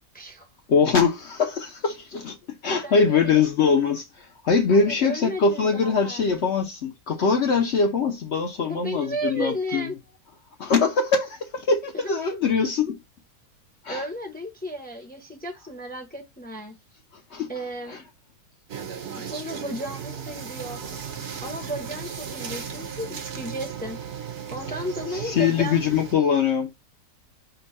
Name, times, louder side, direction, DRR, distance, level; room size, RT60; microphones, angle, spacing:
voice 1, 0.1-0.5 2.8-3.5 4.7-6.3 8.6-10.0 11.9-12.1 13.9-16.8 17.5-18.0 19.2-20.8 21.4-24.0 24.5-25.9, equal, 10° left, 0.5 m, -34 dB
voice 2, 0.7-2.4 2.6-9.9 10.6-13.0 13.8-14.0 17.3-17.5 17.9-18.0 25.2-26.7, left 5 dB, 65° left, 0.7 m, -22 dB
sound 1, 18.7-26.1, right 7 dB, 55° right, 0.9 m, -36 dB
5.4 x 2.2 x 4.0 m
omnidirectional pair, 1.8 m